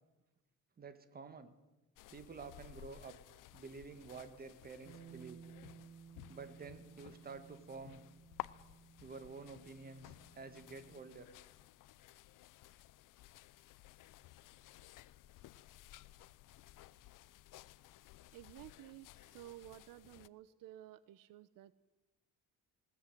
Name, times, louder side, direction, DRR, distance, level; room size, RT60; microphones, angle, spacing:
voice 1, 0.8-1.5 2.1-3.1 3.5-5.4 6.3-8.0 9.0-11.3, right 4 dB, 25° right, 11 dB, 1.8 m, -50 dB
sound 1, 2.0-20.3, left 16 dB, 65° left, 0.7 m, -56 dB
Bass guitar, 4.9-11.1, right 7 dB, 50° right, 2.3 m, -58 dB
voice 2, 18.3-21.7, right 14 dB, 75° right, 16 dB, 1.0 m, -54 dB
19.5 x 18.0 x 9.2 m, 1.1 s
cardioid pair, 145°, 34 cm